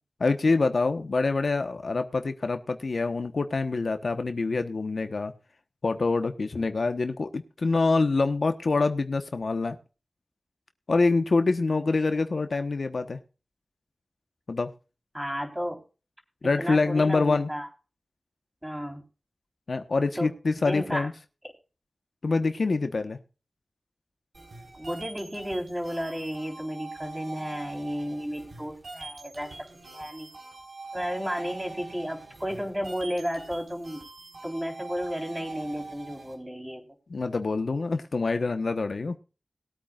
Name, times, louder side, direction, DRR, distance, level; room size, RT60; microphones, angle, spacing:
voice 1, 0.2-5.3 5.8-9.8 10.9-13.2 14.5-14.7 16.4-17.5 19.7-21.1 22.2-23.2 37.1-39.2, left 3 dB, 70° left, 8 dB, 1.1 m, -25 dB
voice 2, 15.1-15.8 16.6-17.7 18.6-19.0 20.2-20.3 20.6-21.1 24.7-29.5 29.9-30.3 30.9-34.0 34.4-36.8, equal, 10° right, 1 dB, 4.0 m, -33 dB
sound 1, 24.3-36.3, right 3 dB, 75° right, 4.5 m, -44 dB
21.0 x 8.8 x 2.4 m, 0.33 s
wide cardioid pair, 65°, 0 cm